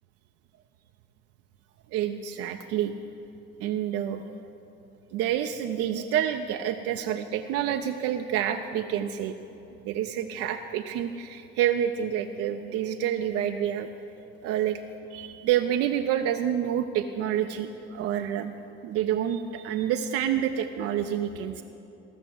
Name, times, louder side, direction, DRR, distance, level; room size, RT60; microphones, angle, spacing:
voice 1, 1.9-2.9 3.6-4.2 5.1-9.3 9.8-13.9 14.4-14.8 15.1-18.5 18.8-21.6, right 10 dB, 50° right, 6 dB, 0.5 m, -28 dB
15.0 x 6.6 x 7.7 m, 2.9 s
figure-of-eight pair, 50°, 30 cm